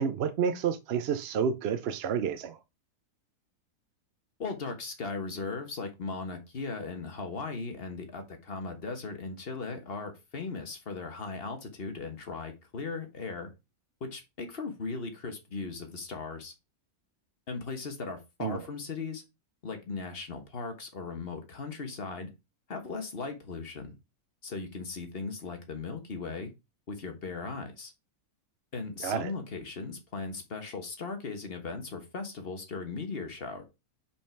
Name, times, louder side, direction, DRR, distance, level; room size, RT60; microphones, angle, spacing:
voice 1, 0.0-2.6 18.4-18.6 29.0-29.3, right 7 dB, 60° right, 0.6 m, -29 dB
voice 2, 4.4-13.5 14.0-16.5 17.5-19.2 19.6-22.3 22.7-23.9 24.4-26.5 26.9-27.9 28.7-33.6, left 4 dB, 40° left, 1.4 m, -38 dB
5.3 x 5.2 x 4.5 m
omnidirectional pair, 1.6 m